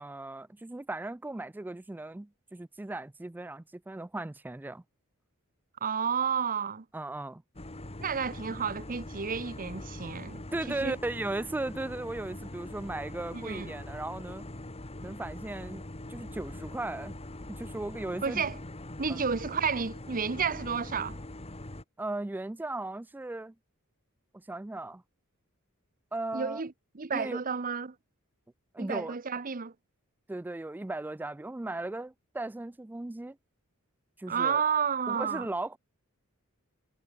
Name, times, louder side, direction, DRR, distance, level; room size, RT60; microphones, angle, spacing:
voice 1, 0.0-4.8 6.9-7.4 10.5-14.5 15.0-15.8 16.1-17.2 17.5-18.4 19.1-19.2 22.0-23.5 24.3-25.0 26.1-26.6 27.1-27.4 28.7-29.2 30.3-33.4 34.2-34.6 35.1-35.8, right 2 dB, 10° right, 0.3 m, -37 dB
voice 2, 5.8-6.8 8.0-11.0 13.3-13.7 18.2-18.6 19.0-21.2 26.3-27.9 28.8-29.7 34.3-35.5, right 6 dB, 40° right, 0.8 m, -31 dB
sound 1, 7.5-21.8, left 1 dB, 30° left, 2.1 m, -43 dB
head